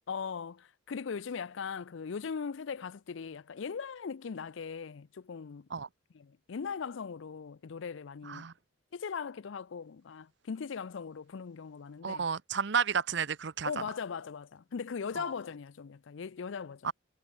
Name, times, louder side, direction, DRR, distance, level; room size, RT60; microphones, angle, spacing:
voice 1, 0.1-5.7 6.1-8.5 8.9-12.3 13.6-16.9, left 6 dB, 65° left, 0.5 m, -39 dB
voice 2, 12.0-13.7 15.2-15.3 16.8-16.9, right 6 dB, 60° right, 0.7 m, -31 dB
head